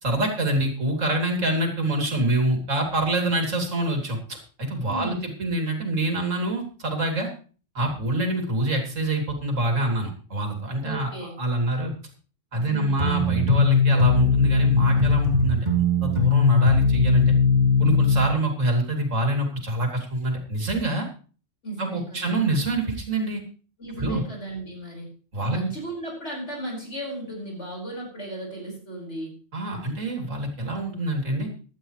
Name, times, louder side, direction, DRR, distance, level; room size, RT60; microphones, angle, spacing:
voice 1, 0.0-7.3 7.7-11.1 11.4-11.9 12.5-15.7 16.0-17.3 17.8-21.1 21.8-23.4 24.0-24.2 25.3-25.6 29.5-31.5, right 1 dB, 90° right, 3 dB, 3.3 m, -26 dB
voice 2, 4.9-5.3 10.8-11.3 12.6-13.1 21.6-22.4 23.8-25.1 25.4-29.3, right 2 dB, 65° left, -1 dB, 5.5 m, -35 dB
sound 1, 13.0-18.3, left 4 dB, 35° right, 3.3 m, -19 dB
16.0 x 12.0 x 3.2 m, 0.38 s
omnidirectional pair, 1.3 m